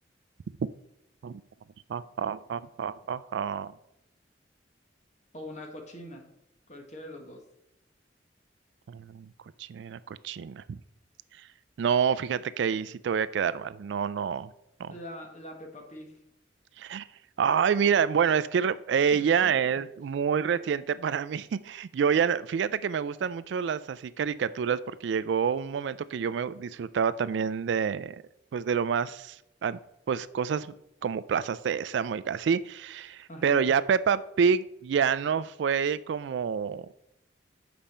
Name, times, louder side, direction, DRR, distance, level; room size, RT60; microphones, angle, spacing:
voice 1, 1.9-3.7 8.9-9.3 9.6-10.8 11.8-14.5 14.8-14.9 16.8-17.1 17.4-28.2 28.5-29.4 29.6-29.8 30.1-30.7 31.0-36.9, right 7 dB, 70° right, 16 dB, 0.3 m, -27 dB
voice 2, 5.3-6.2 6.7-7.4 14.9-16.1 19.1-19.8 33.3-33.7, left 1 dB, 40° left, 2 dB, 1.4 m, -43 dB
7.2 x 5.2 x 4.3 m, 0.81 s
head